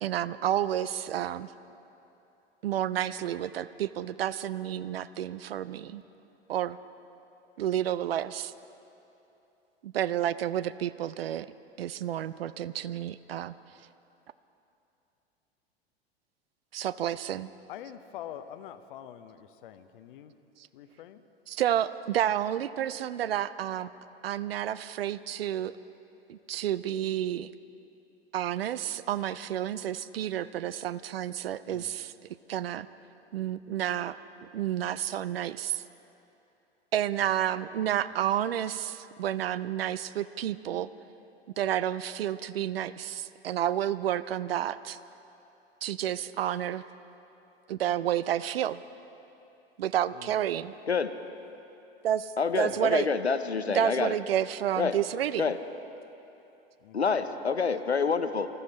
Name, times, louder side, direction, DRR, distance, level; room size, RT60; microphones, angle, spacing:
voice 1, 0.0-1.5 2.6-6.0 6.5-6.8 7.6-8.5 9.8-11.5 11.8-13.5 16.7-17.5 21.5-23.9 24.2-25.7 26.3-27.5 28.3-32.1 32.5-32.9 33.3-34.2 34.5-35.8 36.9-40.9 41.6-45.0 45.8-46.8 47.7-48.8 49.8-50.7 52.0-53.1 53.7-55.5, right 11 dB, 65° right, 16 dB, 0.5 m, -30 dB
voice 2, 17.7-20.3 20.7-21.2 31.7-31.9 50.1-50.4 52.7-53.0 56.8-57.2, left 10 dB, 55° left, 11 dB, 0.8 m, -45 dB
voice 3, 52.4-54.1 54.8-55.0 55.4-55.6 56.9-58.5, left 5 dB, 85° left, 10 dB, 0.7 m, -27 dB
20.5 x 14.5 x 4.2 m, 2.9 s
figure-of-eight pair, 90°, 32 cm